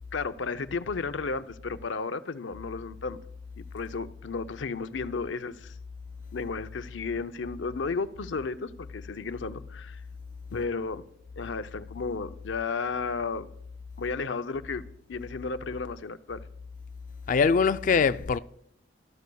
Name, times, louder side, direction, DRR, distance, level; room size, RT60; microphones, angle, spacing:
voice 1, 0.1-3.2 3.6-5.7 6.3-10.0 10.5-11.0 11.4-13.5 14.0-16.4, left 4 dB, 90° left, 0.6 m, -33 dB
voice 2, 17.3-18.4, left 5 dB, 45° left, 0.3 m, -22 dB
13.0 x 13.0 x 2.3 m
head